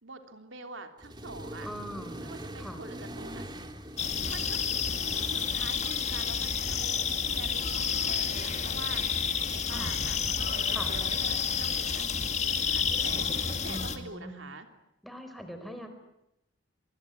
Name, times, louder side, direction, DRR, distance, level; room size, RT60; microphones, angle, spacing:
voice 1, 0.0-1.7 2.2-3.6 4.3-4.6 5.3-6.9 7.2-14.7, right 3 dB, 75° right, 6 dB, 3.2 m, -46 dB
Accelerating revving vroom, 1.0-6.2, right 1 dB, 20° right, 2.7 m, -43 dB
voice 2, 1.6-2.2 2.6-2.8 9.7-9.9 10.7-10.9 13.7-14.4 15.0-15.9, equal, ahead, 6 dB, 4.6 m, -41 dB
sound 1, 4.0-14.0, left 6 dB, 35° left, 2.2 m, -30 dB
27.0 x 22.5 x 9.8 m, 0.87 s
head